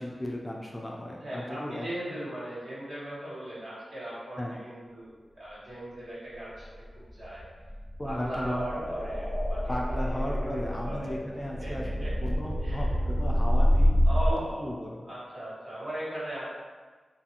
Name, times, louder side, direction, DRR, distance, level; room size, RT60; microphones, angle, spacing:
voice 1, 0.0-1.9 4.4-4.6 8.0-8.9 9.7-14.0 14.6-15.1, left 1 dB, 15° left, -2 dB, 0.3 m, -35 dB
voice 2, 1.2-6.6 7.1-7.4 8.0-11.1 11.6-12.1 12.6-12.8 14.0-14.7 15.0-16.5, right 1 dB, 70° right, -10 dB, 1.3 m, -38 dB
sound 1, 6.6-14.3, equal, 85° right, 0.8 m, -27 dB
sound 2, 8.5-14.2, equal, 5° right, 0.7 m, -41 dB
2.6 x 2.5 x 2.7 m, 1.4 s
wide cardioid pair, 125°, 0 cm